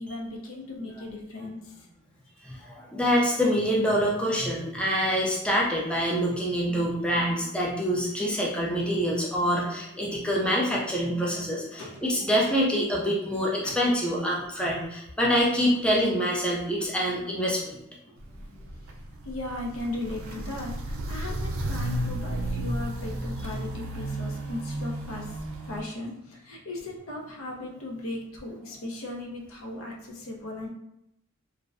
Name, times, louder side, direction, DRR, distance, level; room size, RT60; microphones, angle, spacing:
voice 1, 0.0-1.9 11.8-12.0 13.6-13.8 18.1-18.2 19.2-25.4 25.6-30.7, left 2 dB, 70° left, -1 dB, 0.5 m, -37 dB
voice 2, 2.4-17.8, equal, 5° left, -4 dB, 0.3 m, -26 dB
Walk footsteps, 18.2-25.8, right 1 dB, 75° right, 0.4 m, -33 dB
2.5 x 2.0 x 2.4 m, 0.81 s
head